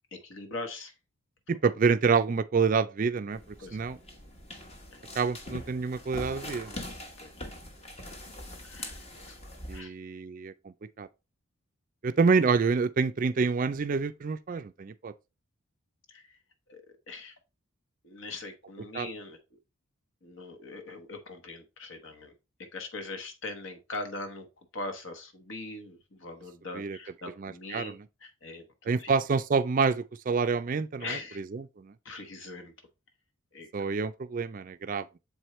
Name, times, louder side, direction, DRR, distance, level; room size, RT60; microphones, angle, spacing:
voice 1, 0.1-0.9 3.6-3.9 4.9-5.0 7.2-7.3 8.6-9.9 16.1-16.4 16.7-17.4 18.0-19.6 20.2-22.3 22.6-24.5 24.7-27.9 28.2-29.1 31.0-31.4 32.0-32.7 33.5-33.7, left 2 dB, 65° left, 1.1 m, -41 dB
voice 2, 1.5-4.0 5.2-6.8 9.7-11.1 12.0-15.1 18.9-19.1 26.7-27.0 27.4-28.0 28.9-31.9 33.7-35.2, right 5 dB, 40° right, 0.3 m, -28 dB
sound 1, 3.3-9.8, left 1 dB, 30° left, 1.0 m, -43 dB
7.0 x 4.5 x 3.1 m
head